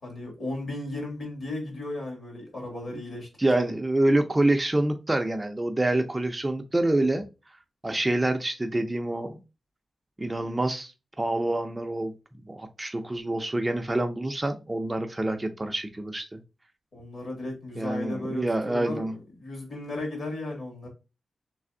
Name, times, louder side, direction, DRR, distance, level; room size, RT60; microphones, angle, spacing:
voice 1, 0.0-3.3 3.5-3.7 16.9-19.0 19.4-20.9, left 2 dB, 55° left, 2.0 m, -35 dB
voice 2, 3.4-7.2 7.8-9.4 10.2-10.9 11.2-12.1 12.5-16.4 17.8-19.2, right 1 dB, 15° right, 0.4 m, -26 dB
3.3 x 3.3 x 3.7 m
wide cardioid pair, 170°, 0 cm